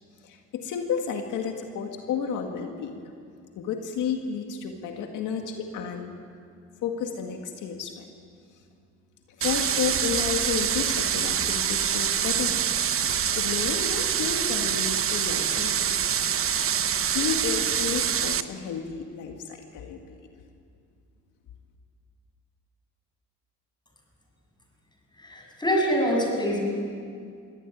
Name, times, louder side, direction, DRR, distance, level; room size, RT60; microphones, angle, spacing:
voice 1, 0.2-3.0 3.6-6.1 6.8-8.1 9.4-16.5 17.1-20.2, left 6 dB, 85° left, 3 dB, 2.0 m, -32 dB
sound 1, 9.4-18.4, right 8 dB, 45° right, 0.9 m, -25 dB
voice 2, 25.2-26.6, equal, 15° left, -1 dB, 7.5 m, -25 dB
23.5 x 17.0 x 9.2 m, 2.3 s
cardioid pair, 90°, 30 cm